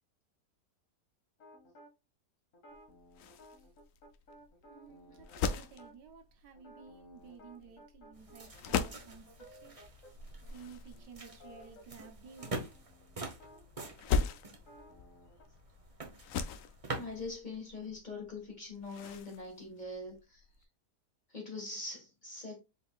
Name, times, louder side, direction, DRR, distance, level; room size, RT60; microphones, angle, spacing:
sound 1, 1.4-1.9 2.5-6.0 6.6-10.1 10.4-10.6 10.9-15.4, equal, 50° left, 1.6 m, -57 dB
sound 2, 2.7-20.6, left 5 dB, 70° left, 0.8 m, -40 dB
voice 1, 4.6-9.8 10.5-12.6, right 6 dB, 90° right, 1.5 m, -54 dB
sound 3, 8.1-17.3, right 2 dB, 30° right, 0.6 m, -46 dB
voice 2, 16.9-20.4 21.3-22.6, left 3 dB, 30° left, 1.5 m, -43 dB
5.0 x 3.7 x 2.3 m
omnidirectional pair, 1.8 m